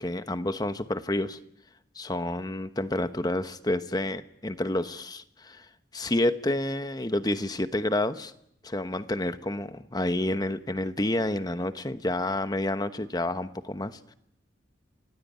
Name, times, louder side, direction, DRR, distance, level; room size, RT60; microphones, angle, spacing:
voice 1, 0.0-1.4 1.9-5.7 5.9-8.3 8.6-14.1, left 1 dB, 20° left, 11 dB, 1.1 m, -29 dB
29.0 x 19.0 x 9.5 m, 0.74 s
head